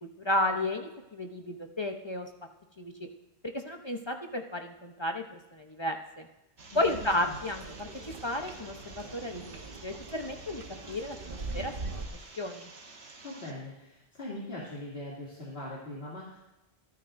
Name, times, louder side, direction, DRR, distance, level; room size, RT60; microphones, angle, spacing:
voice 1, 0.0-2.3 2.8-3.1 3.4-6.3 6.7-11.9 12.4-12.7, left 1 dB, 30° left, 4 dB, 0.8 m, -33 dB
sound 1, 6.6-13.5, right 3 dB, 80° right, 1.6 m, -50 dB
voice 2, 6.7-7.4 13.2-16.4, left 1 dB, 70° left, -7 dB, 2.8 m, -41 dB
sound 2, 6.7-12.1, right 3 dB, 60° right, 1.3 m, -42 dB
26.0 x 10.0 x 2.6 m, 0.96 s
omnidirectional pair, 1.1 m